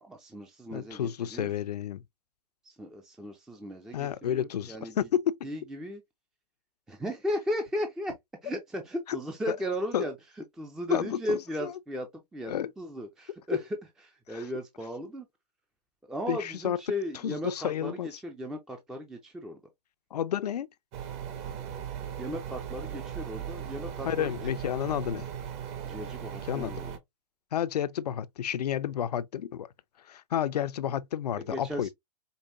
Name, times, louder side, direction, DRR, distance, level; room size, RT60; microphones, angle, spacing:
voice 1, 0.0-1.5 2.6-5.0 5.4-6.0 6.9-8.1 8.4-10.1 10.6-13.6 14.1-15.3 16.1-19.6 22.2-24.5 25.8-27.0 31.5-31.9, equal, 5° right, 0.4 m, -36 dB
voice 2, 0.7-2.0 3.9-5.4 9.1-9.2 9.5-9.6 9.9-10.1 10.9-11.7 12.5-12.7 14.3-14.4 16.3-16.8 17.2-18.1 20.1-20.7 24.0-25.2 26.4-26.7 27.5-29.7 30.1-31.9, left 10 dB, 70° left, 0.5 m, -31 dB
sound 1, 20.9-27.0, right 9 dB, 30° right, 0.7 m, -38 dB
5.3 x 2.2 x 2.6 m
hypercardioid pair, 130°, 21 cm